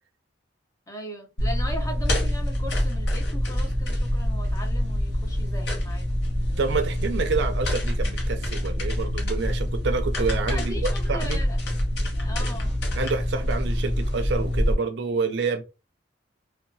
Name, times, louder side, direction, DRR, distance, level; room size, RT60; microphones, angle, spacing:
voice 1, 0.9-6.0 10.5-11.6 12.1-12.7, equal, 15° left, 0.6 m, -38 dB
sound 1, 1.4-14.7, equal, 60° left, 0.8 m, -26 dB
voice 2, 6.6-11.4 13.0-15.6, right 4 dB, 65° right, 0.4 m, -28 dB
2.7 x 2.2 x 2.6 m
head